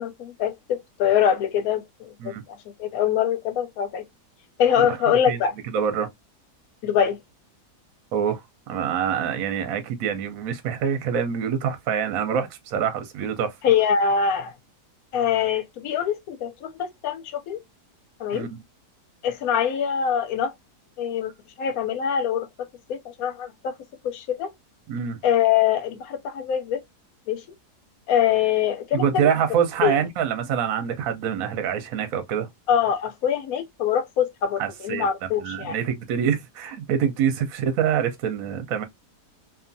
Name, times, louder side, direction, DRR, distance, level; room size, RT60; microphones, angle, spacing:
voice 1, 0.0-2.3 2.8-4.0 4.6-5.5 6.8-7.2 13.6-14.5 15.1-17.6 18.2-18.5 19.2-20.5 21.0-21.3 21.6-23.7 24.0-24.5 25.2-26.8 27.3-27.4 28.1-29.3 29.8-30.0 32.7-35.8, left 8 dB, 70° left, 0.9 m, -24 dB
voice 2, 5.7-6.1 8.1-13.5 18.3-18.5 24.9-25.2 28.9-32.5 34.6-35.1 35.4-38.8, right 8 dB, 65° right, 0.9 m, -25 dB
2.7 x 2.4 x 2.5 m
omnidirectional pair, 1.8 m